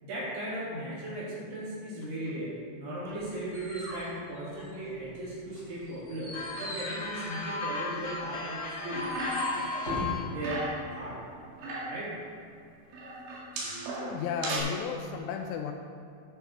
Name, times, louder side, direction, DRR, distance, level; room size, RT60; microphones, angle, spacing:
voice 1, 0.0-9.1 9.8-11.2 11.9-12.2 13.6-13.7, right 1 dB, 65° right, -7 dB, 5.0 m, -37 dB
sound 1, 3.1-5.1 5.5-10.1, equal, 25° left, 2.0 m, -41 dB
sound 2, 6.3-10.2, left 3 dB, 50° left, 2.7 m, -35 dB
sound 3, 8.8-9.7 10.0-10.9 11.4-12.1 12.9-14.6, right 2 dB, 80° right, 4.3 m, -36 dB
voice 2, 14.1-15.7, left 6 dB, 80° left, 4 dB, 2.6 m, -34 dB
10.5 x 6.6 x 6.3 m, 2.6 s
omnidirectional pair, 5.3 m